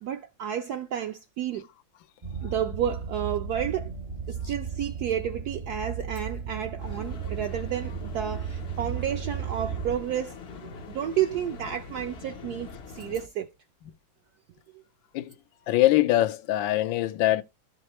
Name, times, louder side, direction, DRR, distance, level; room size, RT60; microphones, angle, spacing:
voice 1, 0.0-1.7 2.4-3.9 4.3-13.5, right 10 dB, 70° right, 1.0 m, -31 dB
sound 1, 2.2-10.0, right 6 dB, 35° right, 0.6 m, -35 dB
sound 2, 6.8-13.3, left 4 dB, 60° left, 0.6 m, -43 dB
voice 2, 15.7-17.4, left 15 dB, 80° left, 1.3 m, -23 dB
13.0 x 5.3 x 3.0 m
omnidirectional pair, 2.1 m